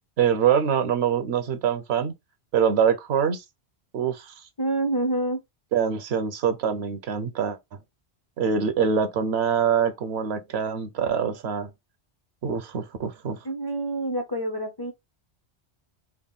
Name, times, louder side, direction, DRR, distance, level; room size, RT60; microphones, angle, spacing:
voice 1, 0.2-2.1 2.5-3.4 3.9-4.3 5.7-7.6 8.4-11.7 12.4-13.4, right 7 dB, 75° right, 0.9 m, -24 dB
voice 2, 4.6-5.4 13.4-14.9, right 1 dB, 30° left, 0.4 m, -27 dB
3.5 x 2.1 x 3.4 m
omnidirectional pair, 1.1 m